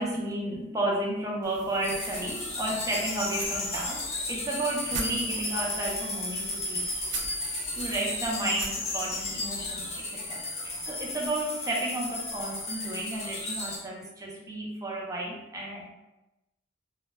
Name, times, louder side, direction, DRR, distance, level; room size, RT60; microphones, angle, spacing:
voice 1, 0.0-6.9 7.7-15.9, right 1 dB, 15° right, -2 dB, 0.4 m, -32 dB
sound 1, 1.4-10.0, right 4 dB, 80° right, 0.4 m, -42 dB
sound 2, 1.8-13.8, left 2 dB, 35° left, 0.5 m, -34 dB
2.1 x 2.0 x 3.2 m, 0.96 s
head